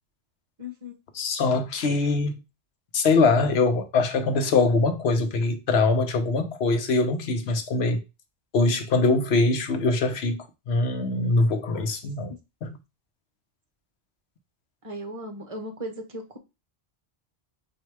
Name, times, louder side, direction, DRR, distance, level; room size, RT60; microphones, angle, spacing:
voice 1, 0.6-0.9 9.0-9.2 14.8-16.4, equal, 35° right, 1.0 m, -37 dB
voice 2, 1.1-2.4 2.9-8.0 8.5-12.3 12.6-12.8, left 3 dB, 80° left, 1.0 m, -23 dB
4.1 x 2.7 x 4.6 m
omnidirectional pair, 1.1 m